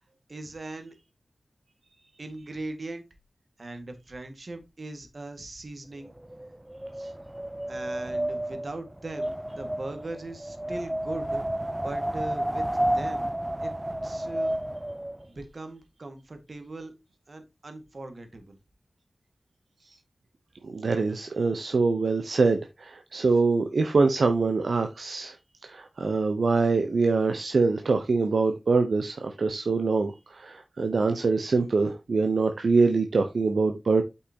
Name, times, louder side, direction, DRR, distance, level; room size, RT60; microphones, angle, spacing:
voice 1, 0.3-0.9 2.2-3.1 3.6-6.1 6.9-7.1 7.7-12.7 12.9-13.3 13.6-13.7 14.0-14.6 15.3-16.9 17.3-18.6, right 2 dB, 60° right, 1.8 m, -39 dB
Wind, 6.0-15.3, right 1 dB, 15° right, 0.5 m, -31 dB
voice 2, 20.6-25.4 25.6-34.0, right 4 dB, 75° right, 0.8 m, -24 dB
8.3 x 5.5 x 2.9 m
cardioid pair, 45°, 0 cm